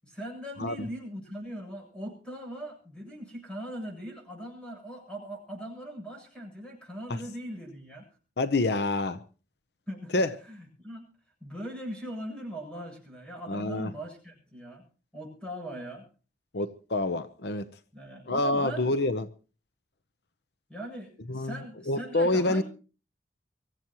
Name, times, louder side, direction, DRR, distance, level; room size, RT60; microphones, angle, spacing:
voice 1, 0.0-8.1 9.9-11.0 11.4-14.8 15.1-16.1 17.9-18.9 20.7-22.6, equal, 5° left, 8.0 m, -40 dB
voice 2, 8.4-9.2 10.1-10.3 13.5-13.9 16.5-17.7 18.3-19.3 21.3-21.6 21.9-22.6, left 2 dB, 70° left, 0.8 m, -27 dB
24.5 x 15.0 x 3.0 m
head